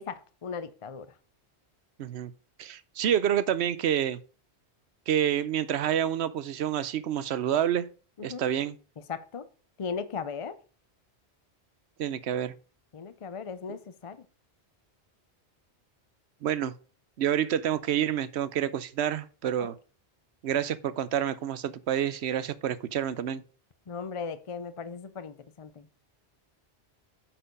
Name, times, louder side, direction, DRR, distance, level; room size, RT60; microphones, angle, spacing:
voice 1, 0.1-1.1 8.2-8.4 9.1-9.5 9.8-10.6 12.9-14.2 19.6-19.7 23.9-25.9, left 5 dB, 40° left, 0.5 m, -37 dB
voice 2, 2.0-2.3 2.6-4.2 5.1-7.9 8.2-8.7 12.0-12.5 16.4-16.7 17.2-19.7 20.4-23.4, right 10 dB, 80° right, 0.9 m, -28 dB
8.7 x 4.6 x 5.2 m
omnidirectional pair, 1.1 m